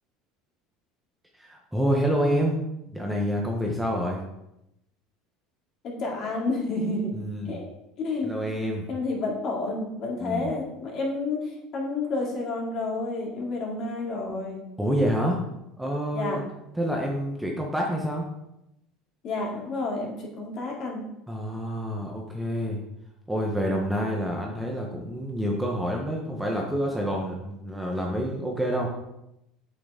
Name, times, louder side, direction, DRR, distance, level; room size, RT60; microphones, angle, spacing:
voice 1, 1.4-2.6 2.9-4.2 7.1-7.6 8.2-8.8 10.2-10.5 14.8-15.4 15.8-16.4 16.8-18.3 21.3-22.8 23.3-28.9, equal, 5° right, -1 dB, 0.9 m, -27 dB
voice 2, 5.8-7.1 7.4-7.7 8.0-8.3 8.9-14.6 16.1-16.4 19.2-21.0, left 3 dB, 40° left, -2 dB, 2.4 m, -30 dB
8.4 x 6.5 x 3.7 m, 0.86 s
cardioid pair, 150°, 0 cm